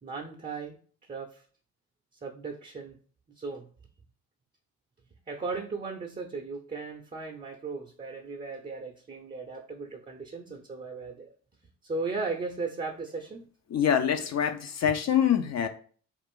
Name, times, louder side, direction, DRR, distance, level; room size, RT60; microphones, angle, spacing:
voice 1, 0.0-0.8 1.1-1.4 2.2-3.0 3.4-3.7 5.3-11.3 11.8-13.4, right 4 dB, 20° right, 2 dB, 0.6 m, -36 dB
voice 2, 13.7-15.7, left 8 dB, 40° left, 7 dB, 0.6 m, -25 dB
2.5 x 2.4 x 3.6 m, 0.43 s
hypercardioid pair, 45°, 40 cm